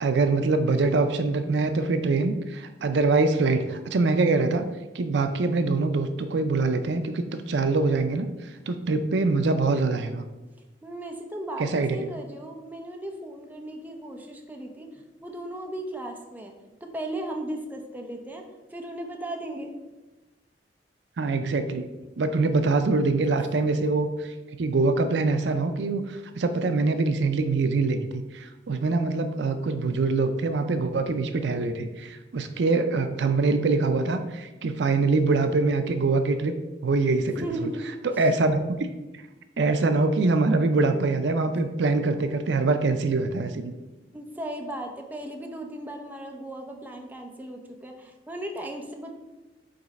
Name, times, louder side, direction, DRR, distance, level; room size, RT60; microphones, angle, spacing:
voice 1, 0.0-4.6 4.9-10.2 11.6-12.1 21.2-21.9 22.2-36.5 36.8-37.7 38.0-38.8 39.6-43.7, right 3 dB, 70° right, 8 dB, 0.5 m, -24 dB
voice 2, 10.8-16.5 16.8-19.7 37.2-37.9 38.1-38.2 44.1-49.1, right 1 dB, 10° right, 2 dB, 0.7 m, -36 dB
5.2 x 4.0 x 5.2 m, 1.1 s
head